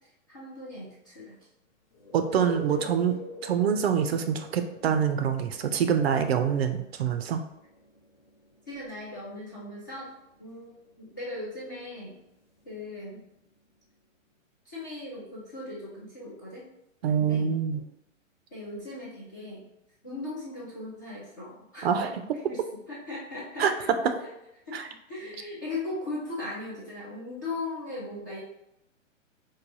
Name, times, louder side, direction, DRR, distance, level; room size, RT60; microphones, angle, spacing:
voice 1, 0.3-1.4 2.3-2.9 8.7-10.1 10.4-12.2 12.6-13.2 14.7-16.7 17.2-17.5 18.5-19.7 20.0-22.1 22.5-22.6 22.9-23.7 24.7-28.4, left 2 dB, 15° left, -7 dB, 0.3 m, -38 dB
sound 1, 1.9-13.5 17.7-17.8, left 2 dB, 60° left, 1.1 m, -46 dB
voice 2, 2.1-3.2 3.4-7.4 17.0-17.8 21.8-22.2 23.6-23.7 24.7-24.9, right 7 dB, 55° right, 7 dB, 0.4 m, -25 dB
4.7 x 2.2 x 2.6 m, 0.84 s
hypercardioid pair, 130°, 39 cm